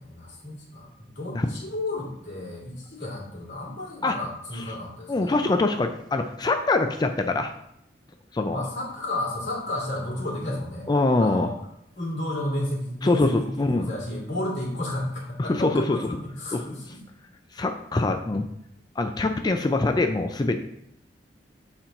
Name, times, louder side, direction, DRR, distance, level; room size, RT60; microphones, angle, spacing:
voice 1, 0.0-5.4 8.5-10.9 11.2-11.5 12.0-17.0, left 1 dB, 75° left, -4 dB, 2.4 m, -32 dB
voice 2, 5.1-7.5 8.3-8.6 10.9-11.5 13.0-13.9 15.4-16.0 16.5-16.6 17.5-18.5 19.0-20.6, left 2 dB, 25° left, 6 dB, 0.4 m, -23 dB
7.0 x 4.4 x 3.8 m, 0.75 s
head